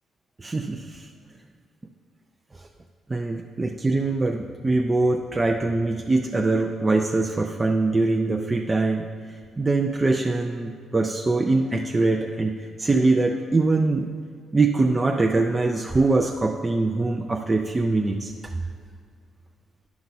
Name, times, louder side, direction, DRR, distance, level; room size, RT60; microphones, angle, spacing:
voice 1, 0.4-1.1 2.5-2.7 3.1-9.1 9.6-14.1 14.5-18.5, right 3 dB, 20° right, 2 dB, 0.5 m, -23 dB
10.5 x 5.9 x 4.1 m, 2.2 s
cardioid pair, 90°, 0 cm